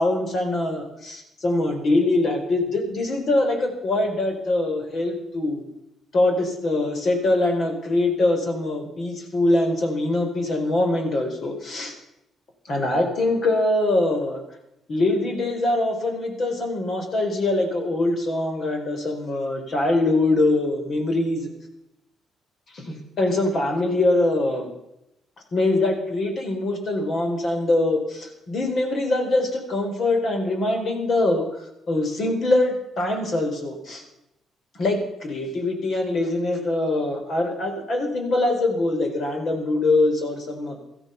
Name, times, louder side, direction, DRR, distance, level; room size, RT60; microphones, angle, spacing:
voice 1, 0.0-5.6 6.1-11.9 12.7-14.4 14.9-21.5 22.7-24.7 25.5-31.4 31.9-34.0 34.7-40.8, left 2 dB, 50° left, 4 dB, 4.1 m, -23 dB
16.5 x 13.5 x 5.8 m, 0.86 s
cardioid pair, 90°, 0 cm